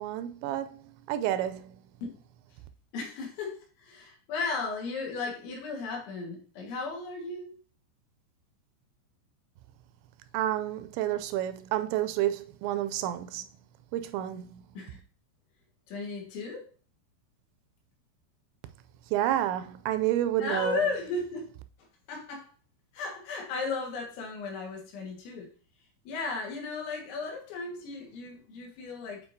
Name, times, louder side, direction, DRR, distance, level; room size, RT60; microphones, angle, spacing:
voice 1, 0.0-1.8 10.3-13.5 13.9-14.6 19.1-20.8, right 12 dB, 85° right, 2.8 m, -30 dB
voice 2, 2.9-7.6 14.8-15.0 15.9-16.7 20.4-21.5 22.1-22.5 22.9-25.5 26.1-29.2, left 4 dB, 80° left, 4.0 m, -35 dB
8.8 x 5.0 x 2.7 m
omnidirectional pair, 5.3 m